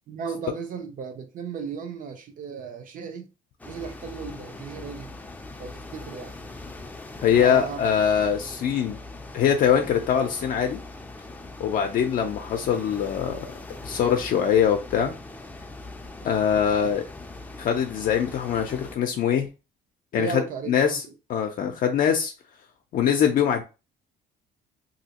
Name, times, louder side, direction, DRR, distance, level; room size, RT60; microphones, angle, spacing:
voice 1, 0.1-3.3 3.6-5.1 5.6-6.4 7.4-7.8 20.1-21.0, right 5 dB, 55° right, 0.8 m, -35 dB
sound 1, 3.6-19.0, left 2 dB, 10° left, 0.5 m, -41 dB
voice 2, 7.2-9.0 9.3-10.8 11.6-13.4 13.8-15.1 16.2-17.0 17.6-19.5 20.1-20.4 20.7-21.0 21.3-22.3 22.9-23.6, left 8 dB, 55° left, 0.5 m, -23 dB
3.0 x 2.8 x 2.9 m
cardioid pair, 110°, 17 cm